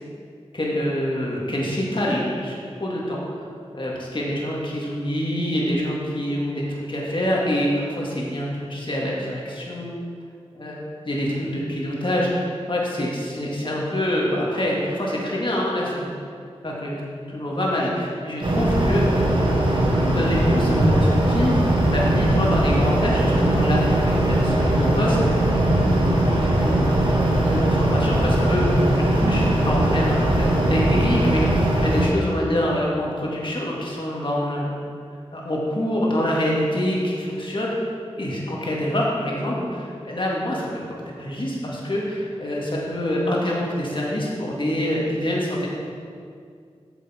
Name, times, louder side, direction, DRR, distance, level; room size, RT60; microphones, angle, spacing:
voice 1, 0.5-2.6 2.8-3.5 3.7-10.0 10.5-10.8 11.0-16.1 16.6-17.0 17.3-19.3 20.0-21.6 21.9-26.0 26.2-26.9 27.3-34.8 35.3-37.7 38.2-40.8 41.2-45.7, left 1 dB, 50° left, -4 dB, 2.0 m, -26 dB
sound 1, 18.4-32.0, right 1 dB, 45° right, 1.6 m, -20 dB
7.8 x 7.1 x 4.4 m, 2.2 s
wide cardioid pair, 55°, 11 cm